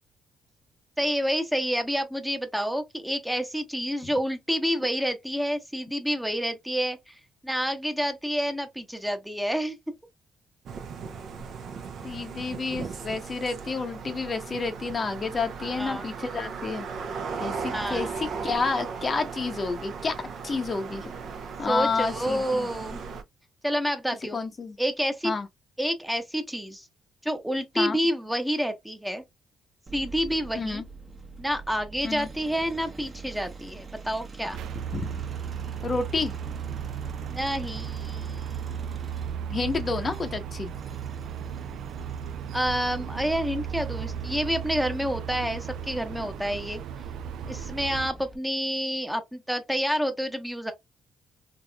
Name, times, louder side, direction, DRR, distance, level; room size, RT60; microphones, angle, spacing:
voice 1, 1.0-7.1 7.4-9.8 15.6-16.1 17.7-18.1 21.7-23.0 23.6-24.4 24.8-25.3 25.8-26.9 27.2-29.2 29.9-30.8 31.4-34.6 37.3-38.9 42.5-46.8 47.5-50.7, equal, 5° right, 0.8 m, -29 dB
sound 1, 10.7-23.2, right 5 dB, 65° right, 0.7 m, -37 dB
voice 2, 12.0-16.9 17.4-20.1 20.4-21.1 21.6-22.7 24.3-24.8 25.2-25.5 27.8-28.0 30.6-30.8 32.0-32.3 34.9-35.1 35.8-36.3 39.5-40.7, left 4 dB, 40° left, 0.7 m, -30 dB
sound 2, 29.9-48.4, right 3 dB, 35° right, 1.0 m, -44 dB
sound 3, 34.5-48.1, right 8 dB, 80° right, 0.3 m, -35 dB
3.5 x 3.0 x 2.2 m
cardioid pair, 90°, 0 cm